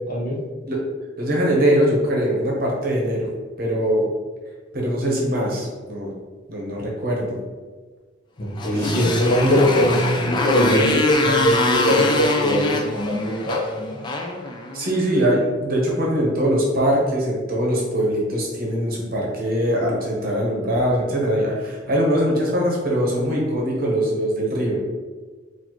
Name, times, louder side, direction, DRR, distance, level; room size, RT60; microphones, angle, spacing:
voice 1, 1.2-3.3 3.6-4.1 4.7-6.1 6.5-7.4 8.7-9.5 14.7-24.8, equal, 50° right, -3 dB, 0.9 m, -22 dB
voice 2, 8.4-14.0, equal, 50° left, -3 dB, 0.8 m, -21 dB
Motorcycle, 8.5-15.1, left 2 dB, 25° left, 0.3 m, -24 dB
4.0 x 2.5 x 3.0 m, 1.4 s
head